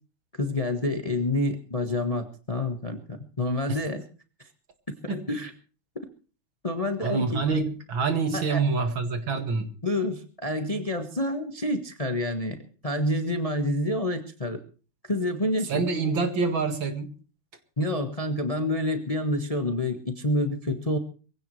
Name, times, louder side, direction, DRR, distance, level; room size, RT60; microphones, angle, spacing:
voice 1, 0.4-4.0 5.0-5.5 6.6-7.4 8.3-8.6 9.8-14.6 15.0-15.8 17.8-21.0, left 1 dB, 20° left, 6 dB, 1.2 m, -28 dB
voice 2, 7.0-9.7 15.7-17.1, right 4 dB, 60° right, 7 dB, 2.7 m, -26 dB
23.0 x 16.5 x 3.2 m, 0.38 s
omnidirectional pair, 2.4 m